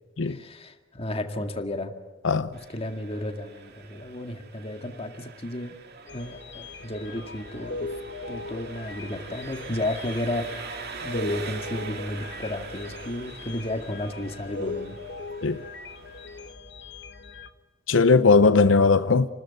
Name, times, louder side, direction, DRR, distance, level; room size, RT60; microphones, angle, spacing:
voice 1, 0.2-1.9 2.7-5.8 6.1-7.9 8.3-10.5 11.0-15.0, left 1 dB, 30° left, 2.1 m, -33 dB
Engine, 2.5-16.5, right 5 dB, 55° right, 2.2 m, -43 dB
sound 1, 6.1-17.5, left 3 dB, 65° left, 1.4 m, -39 dB
voice 2, 17.9-19.3, left 4 dB, 80° left, 0.7 m, -18 dB
29.5 x 13.5 x 9.7 m
head